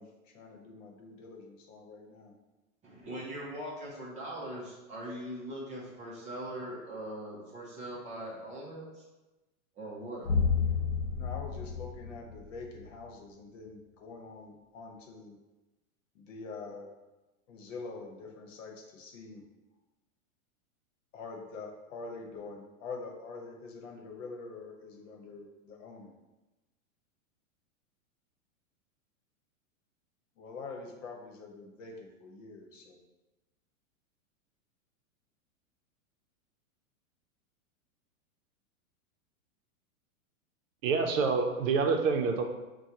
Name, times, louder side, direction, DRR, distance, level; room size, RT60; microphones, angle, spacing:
voice 1, 0.0-2.3 11.1-15.4 16.1-16.9 17.5-19.4 21.1-26.1 30.4-33.0, left 4 dB, 65° left, 1 dB, 1.0 m, -45 dB
voice 2, 2.8-9.1 9.8-10.3, right 1 dB, 15° right, -5 dB, 0.5 m, -41 dB
sound 1, 10.3-12.9, left 5 dB, 40° left, 1.3 m, -30 dB
voice 3, 40.8-42.4, right 4 dB, 65° right, 4 dB, 0.6 m, -27 dB
6.0 x 2.2 x 2.8 m, 1.1 s
hypercardioid pair, 140°, 42 cm